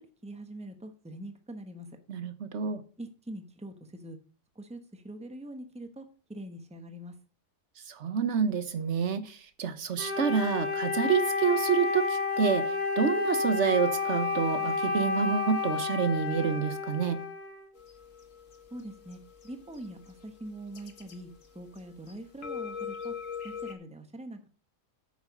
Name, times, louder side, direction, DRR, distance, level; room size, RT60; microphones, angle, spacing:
voice 1, 0.2-1.9 3.0-4.2 4.5-7.1 18.7-21.3 21.5-23.1 23.4-24.5, right 1 dB, 5° right, 0.9 m, -43 dB
voice 2, 2.1-2.8 7.9-12.6 13.0-17.2, right 6 dB, 60° right, 1.2 m, -28 dB
Wind instrument woodwind instrument, 10.0-17.7, left 4 dB, 30° left, 1.6 m, -30 dB
sound 1, 17.8-21.8 22.1-23.7, left 7 dB, 65° left, 1.8 m, -42 dB
8.8 x 6.4 x 5.3 m
omnidirectional pair, 1.4 m